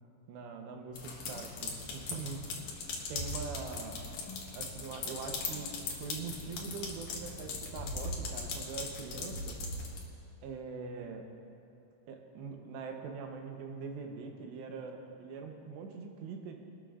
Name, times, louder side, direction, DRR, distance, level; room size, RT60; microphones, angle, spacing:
voice 1, 0.3-2.5 3.1-4.0 4.5-9.6 10.4-11.3 12.1-16.5, right 5 dB, 75° right, 3 dB, 3.0 m, -43 dB
sound 1, 0.9-10.0, left 3 dB, 60° left, 2.2 m, -39 dB
23.0 x 13.0 x 2.5 m, 2.7 s
omnidirectional pair, 5.2 m